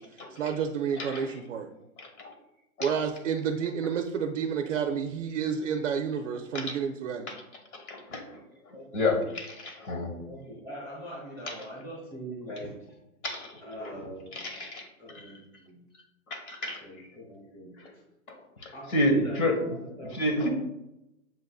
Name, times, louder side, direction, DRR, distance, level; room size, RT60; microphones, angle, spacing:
voice 1, 0.4-1.7 2.8-7.3, right 7 dB, 60° right, 5 dB, 0.5 m, -30 dB
voice 2, 2.0-2.3 2.8-2.9 6.5-6.8 7.3-7.4 7.9-8.2 8.9-10.1 13.2-13.5 13.8-13.9 14.3-14.9 16.3-16.8 18.6-19.7 20.1-20.5, left 1 dB, 80° left, 2 dB, 1.5 m, -29 dB
voice 3, 8.7-9.0 10.2-12.7 13.6-14.5 15.0-15.8 16.8-17.7 18.7-20.5, equal, 10° left, -6 dB, 1.0 m, -42 dB
7.4 x 2.6 x 2.3 m, 0.89 s
hypercardioid pair, 170°, 43 cm